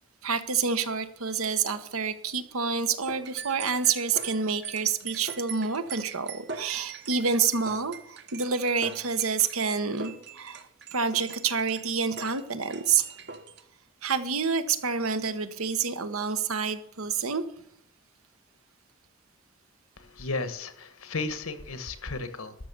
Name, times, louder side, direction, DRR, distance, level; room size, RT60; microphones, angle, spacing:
voice 1, 0.2-10.6 10.9-13.1 14.0-17.4, right 5 dB, 85° right, 11 dB, 1.2 m, -28 dB
sound 1, 3.0-13.6, right 5 dB, 50° right, 1.1 m, -42 dB
voice 2, 20.0-22.6, left 3 dB, 85° left, 12 dB, 1.4 m, -34 dB
13.0 x 6.6 x 6.8 m, 0.74 s
head